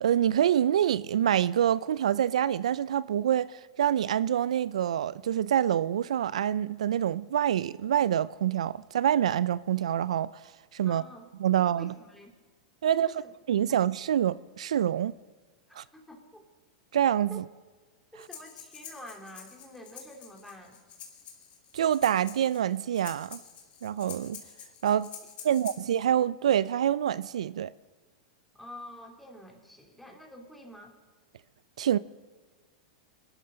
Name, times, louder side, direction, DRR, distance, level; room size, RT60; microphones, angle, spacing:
voice 1, 0.0-10.3 10.7-11.0 11.4-11.9 12.8-13.1 13.5-15.1 15.8-15.9 16.9-17.4 21.7-23.4 23.8-24.4 24.8-25.1 25.4-27.7 31.8-32.0, right 10 dB, 80° right, 0.3 m, -26 dB
voice 2, 10.8-11.3 11.8-12.3 12.8-13.3 13.7-13.8 15.7-16.4 17.3-17.4 18.1-20.8 25.5-25.7 28.5-30.9, left 1 dB, 5° left, 2.9 m, -48 dB
Breathing, 18.2-26.0, left 8 dB, 40° left, 2.6 m, -47 dB
22.5 x 12.0 x 3.8 m
hypercardioid pair, 110°, 3 cm